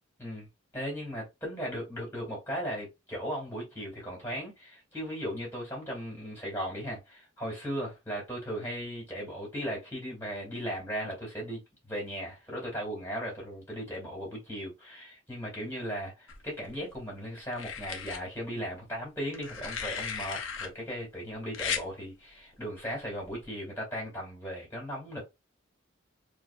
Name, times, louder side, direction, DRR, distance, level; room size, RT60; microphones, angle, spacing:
voice 1, 0.7-25.2, equal, 10° left, 2.4 m, -37 dB
sound 1, 16.3-17.0 17.5-18.2 19.3-20.7 21.5-21.9 23.2-23.4, left 7 dB, 75° left, 0.8 m, -36 dB
4.4 x 2.7 x 2.4 m
head